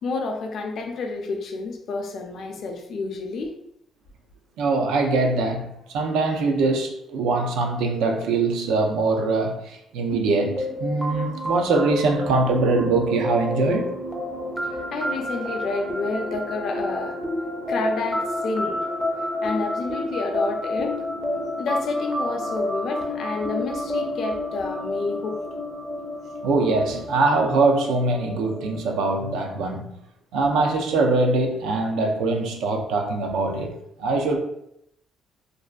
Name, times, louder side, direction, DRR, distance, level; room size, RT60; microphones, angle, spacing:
voice 1, 0.0-3.5 14.9-17.2 17.7-18.8 19.4-21.0 21.6-25.4, left 3 dB, 55° left, 3 dB, 0.4 m, -29 dB
voice 2, 4.6-13.9 26.4-29.9 30.3-33.7 34.0-34.4, right 3 dB, 85° right, 2 dB, 0.4 m, -22 dB
sound 1, 10.1-29.6, left 1 dB, 5° right, 0.4 m, -30 dB
2.5 x 2.4 x 2.3 m, 0.76 s
cardioid pair, 125°, 0 cm